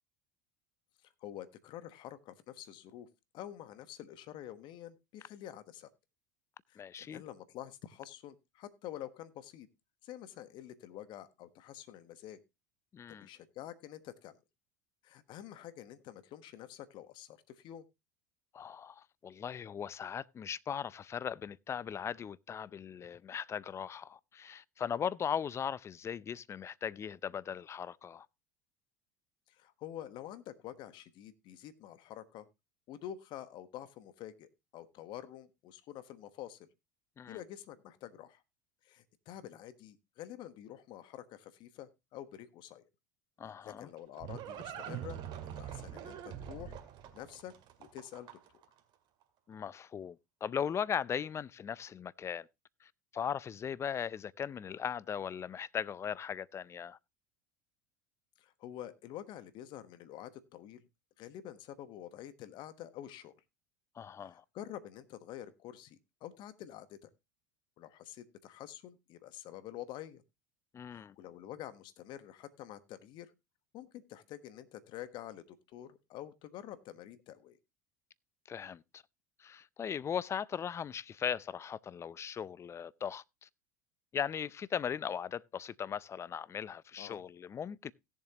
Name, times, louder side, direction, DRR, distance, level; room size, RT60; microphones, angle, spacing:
voice 1, 1.2-3.1 3.3-5.9 6.7-9.7 10.0-12.4 13.2-14.4 15.0-17.9 29.5-32.5 32.9-36.7 37.3-38.4 38.8-42.9 43.6-46.7 47.1-47.5 47.8-48.3 48.5-48.6 58.4-60.9 61.2-63.3 64.2-67.1 67.8-70.2 70.9-73.3 73.7-77.6 87.0-87.2, left 12 dB, 55° left, 1.3 m, -48 dB
voice 2, 6.8-7.2 12.9-13.3 18.5-28.3 37.2-37.4 43.4-43.9 49.5-52.5 52.8-57.0 64.0-64.4 70.7-71.1 78.5-79.0 79.4-83.5 84.1-87.9, left 8 dB, 30° left, 0.5 m, -38 dB
Livestock farm animals working animals, 43.6-48.6, right 9 dB, 50° right, 2.1 m, -44 dB
17.0 x 7.3 x 2.9 m
hypercardioid pair, 80°, 10 cm